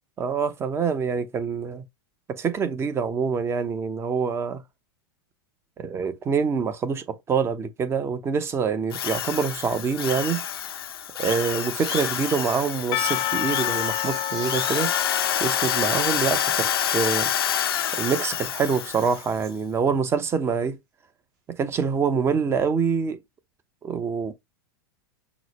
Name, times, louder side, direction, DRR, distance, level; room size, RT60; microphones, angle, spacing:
voice 1, 0.2-1.8 2.3-4.6 5.8-10.4 11.2-14.9 15.4-17.3 17.9-20.8 21.6-23.2 23.8-24.3, right 6 dB, 20° right, 0.7 m, -25 dB
Drill, 8.9-19.3, left 9 dB, 85° left, 0.7 m, -27 dB
Crying sobbing, 11.6-12.6 13.1-13.2 13.6-15.1 15.8-15.9 16.2-16.6 17.1-17.5 17.9-18.4 18.8-19.5 20.0-20.3, right 6 dB, 45° right, 1.4 m, -45 dB
Percussion / Church bell, 12.9-17.7, left 17 dB, 35° left, 0.3 m, -31 dB
6.1 x 2.1 x 3.0 m
hypercardioid pair, 120°, 12 cm